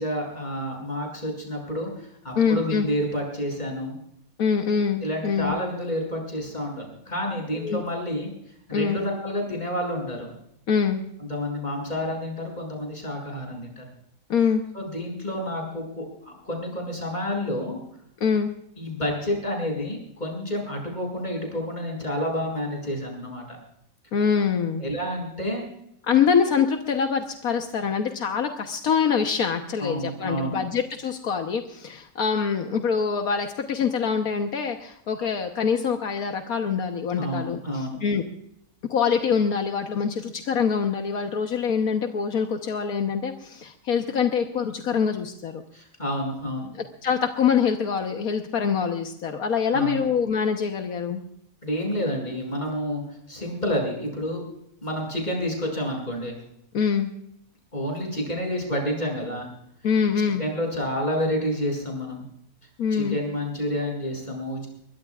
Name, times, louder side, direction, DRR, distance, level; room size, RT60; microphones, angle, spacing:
voice 1, 0.0-4.0 5.0-8.3 8.7-10.3 11.2-13.8 14.7-17.8 18.8-23.6 24.8-25.7 29.8-30.6 37.2-38.0 45.7-46.7 49.7-50.0 51.6-53.0 53.3-54.4 54.8-56.4 57.7-59.5 60.4-62.2 62.9-64.7, equal, 30° left, 0 dB, 7.3 m, -29 dB
voice 2, 2.3-2.9 4.4-5.5 7.6-7.8 8.7-9.0 10.7-11.0 14.3-14.6 18.2-18.5 24.1-24.8 26.1-38.2 38.9-45.6 46.7-51.2 56.7-57.1 59.8-60.4 62.8-63.2, left 6 dB, 80° left, 4 dB, 1.6 m, -24 dB
23.0 x 21.5 x 2.4 m, 0.73 s
omnidirectional pair, 1.5 m